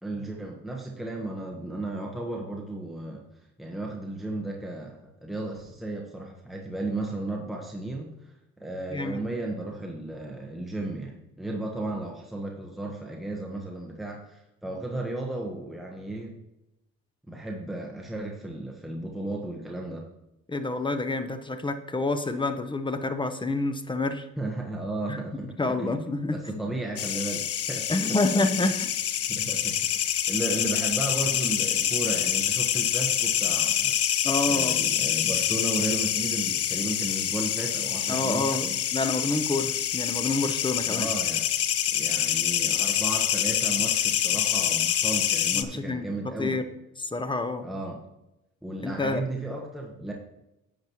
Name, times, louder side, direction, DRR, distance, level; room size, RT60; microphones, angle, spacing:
voice 1, 0.0-3.2 3.6-8.1 8.6-16.4 17.3-20.0 24.4-25.5 25.8-27.8 29.3-29.8 30.3-34.0 34.5-38.8 40.9-41.4 41.9-46.6 47.6-48.0 48.6-50.1, right 2 dB, ahead, -1 dB, 1.2 m, -34 dB
voice 2, 20.5-24.3 25.1-25.2 25.6-26.7 27.9-28.9 34.2-34.8 38.1-38.7 38.9-41.1 45.5-46.7 47.0-47.7 48.8-49.2, left 2 dB, 15° left, 9 dB, 0.8 m, -28 dB
sound 1, 27.0-45.6, left 10 dB, 55° left, 0.6 m, -26 dB
10.5 x 7.9 x 3.0 m, 0.92 s
cardioid pair, 90°, 30 cm